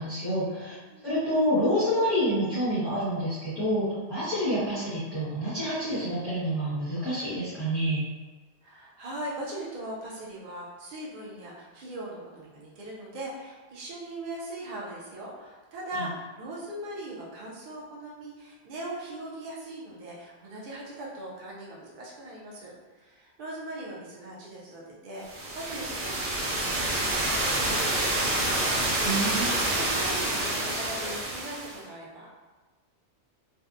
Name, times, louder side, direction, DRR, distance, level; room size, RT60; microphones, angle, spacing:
voice 1, 0.0-0.8 1.0-8.1 16.0-16.1 29.0-29.6, equal, ahead, -15 dB, 0.8 m, -28 dB
voice 2, 8.6-28.8 29.7-32.4, right 1 dB, 55° right, -6 dB, 0.6 m, -40 dB
sound 1, 25.3-31.8, right 1 dB, 75° right, 0.9 m, -28 dB
2.6 x 2.1 x 2.4 m, 1.3 s
omnidirectional pair, 1.2 m